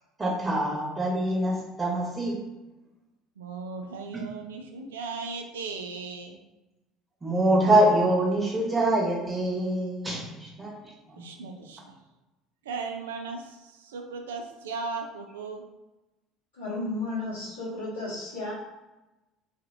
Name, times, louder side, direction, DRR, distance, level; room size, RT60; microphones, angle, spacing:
voice 1, 0.2-2.4 7.2-10.7 11.2-11.3, right 1 dB, 15° right, -3 dB, 1.1 m, -24 dB
voice 2, 3.4-6.4 11.2-12.0 12.6-15.6, right 4 dB, 85° right, 4 dB, 0.4 m, -37 dB
voice 3, 16.6-18.5, left 2 dB, 80° left, -13 dB, 1.4 m, -33 dB
3.2 x 2.6 x 2.7 m, 1.0 s
hypercardioid pair, 65°, 0 cm